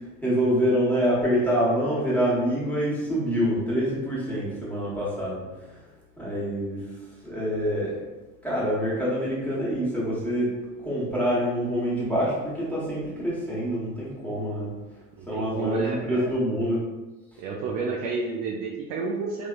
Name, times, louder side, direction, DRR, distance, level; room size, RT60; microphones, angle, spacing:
voice 1, 0.2-5.4 6.2-6.8 7.2-8.0 8.4-10.5 10.8-14.7 15.3-16.8 17.3-17.4, equal, 5° left, -7 dB, 1.2 m, -26 dB
voice 2, 15.2-16.3 17.4-19.5, right 4 dB, 45° right, -2 dB, 0.5 m, -31 dB
3.3 x 2.2 x 2.4 m, 1.1 s
hypercardioid pair, 70°, 41 cm